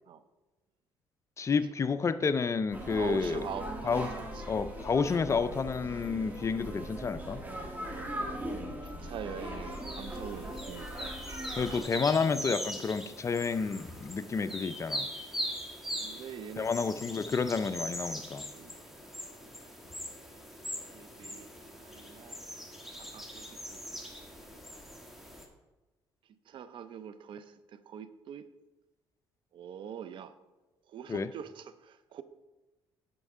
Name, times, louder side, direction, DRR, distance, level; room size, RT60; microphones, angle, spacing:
voice 1, 1.4-3.5 3.8-4.1 4.5-7.4 11.6-15.1 16.6-18.5 31.1-31.3, left 5 dB, 30° left, 12 dB, 0.4 m, -30 dB
sound 1, 2.7-11.8, equal, 20° right, 1.7 m, -40 dB
voice 2, 2.9-4.4 7.9-8.6 8.8-11.2 16.0-16.7 18.5-18.8 20.9-21.5 21.8-22.4 22.9-23.5 23.7-24.3 26.5-28.5 29.5-30.3 30.9-32.2, right 8 dB, 65° right, 13 dB, 0.5 m, -44 dB
sound 2, 9.7-25.4, equal, 5° right, 1.4 m, -41 dB
9.1 x 6.3 x 3.6 m, 1.1 s
cardioid pair, 85°, 9 cm